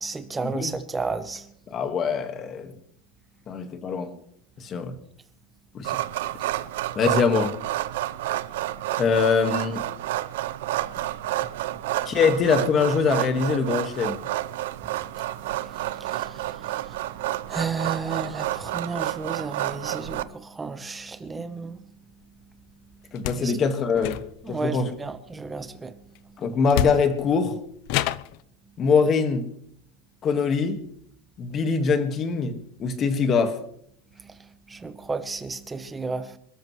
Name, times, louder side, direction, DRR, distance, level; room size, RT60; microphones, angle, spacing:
voice 1, 0.0-1.5 15.4-21.8 23.4-23.5 24.4-26.0 34.2-36.4, right 4 dB, 10° right, 0.9 m, -33 dB
voice 2, 1.7-2.7 3.5-4.1 4.6-4.9 5.7-5.9 6.9-7.6 9.0-9.9 12.0-14.2 23.1-24.2 24.5-24.9 26.4-27.6 28.8-29.5 30.2-30.8 31.4-33.6, left 5 dB, 25° left, 1.6 m, -23 dB
sound 1, 5.8-20.2, right 15 dB, 70° right, 0.7 m, -30 dB
sound 2, 23.1-23.5 23.9-24.6 26.2-26.3 26.7-27.3 27.9-28.4, left 12 dB, 45° left, 0.6 m, -28 dB
27.5 x 13.5 x 3.2 m
supercardioid pair, 175°, 0 cm